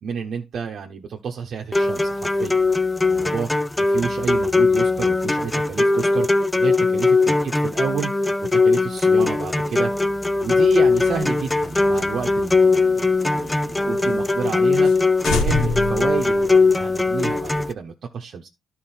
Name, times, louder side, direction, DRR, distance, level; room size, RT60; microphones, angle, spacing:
voice 1, 0.0-2.6 3.0-3.5 3.8-6.3 6.6-8.1 8.5-9.9 10.4-14.9 15.2-18.5, right 6 dB, 60° right, 1 dB, 1.1 m, -30 dB
sound 1, 1.7-17.7, left 3 dB, 15° left, 0.6 m, -20 dB
sound 2, 10.9-13.7 14.1-14.2 14.5-14.6 14.8-15.0 15.2-16.9, left 4 dB, 85° left, 1.4 m, -28 dB
11.0 x 4.4 x 4.4 m, 0.24 s
cardioid pair, 90°, 0 cm